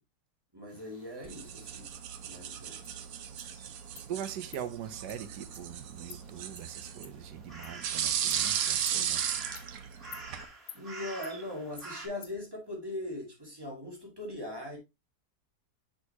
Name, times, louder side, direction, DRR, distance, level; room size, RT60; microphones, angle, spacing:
voice 1, 0.5-1.9 2.2-3.0 10.7-14.8, left 1 dB, 15° right, 2.2 m, -40 dB
sound 1, 0.7-12.1, right 3 dB, 35° right, 2.1 m, -50 dB
sound 2, 1.2-10.5, right 9 dB, 65° right, 1.0 m, -36 dB
Insect, 2.8-2.9 3.4-3.5 4.0-4.1 4.5-4.6 5.1-5.2 5.5-5.6 6.1-6.2 6.6-6.7 7.0-7.1 7.6-7.7 8.3-8.4 8.9-9.0 9.6-9.7 10.1-10.2 10.7-10.8 11.2-11.3 11.8-11.9 12.2-12.3, left 11 dB, 70° left, 1.1 m, -48 dB
voice 2, 4.1-9.2, right 9 dB, 80° right, 1.4 m, -41 dB
6.4 x 5.8 x 2.8 m
omnidirectional pair, 1.8 m